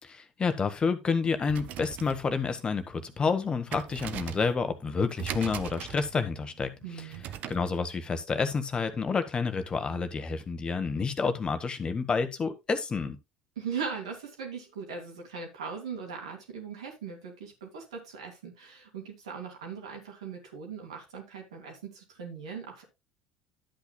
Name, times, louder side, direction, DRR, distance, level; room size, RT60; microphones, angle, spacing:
voice 1, 0.0-7.1 7.5-13.2, left 5 dB, 30° left, 1.2 m, -29 dB
sound 1, 1.4-7.7, right 10 dB, 50° right, 0.8 m, -41 dB
voice 2, 6.8-7.2 13.6-22.8, right 6 dB, 80° right, 2.7 m, -39 dB
11.5 x 8.4 x 2.2 m
figure-of-eight pair, 65°, 3 cm